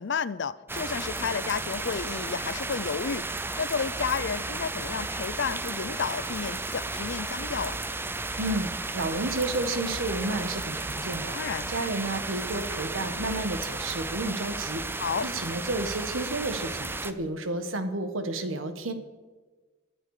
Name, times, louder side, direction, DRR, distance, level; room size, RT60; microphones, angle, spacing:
voice 1, 0.0-3.2 3.6-7.8 11.3-11.7 14.9-15.3, left 6 dB, 60° left, 17 dB, 0.5 m, -31 dB
sound 1, 0.7-17.1, right 2 dB, 10° right, 0.5 m, -34 dB
voice 2, 8.4-11.3 11.7-14.8 15.2-18.9, right 2 dB, 80° right, 8 dB, 1.4 m, -31 dB
22.5 x 7.9 x 4.9 m, 1.3 s
head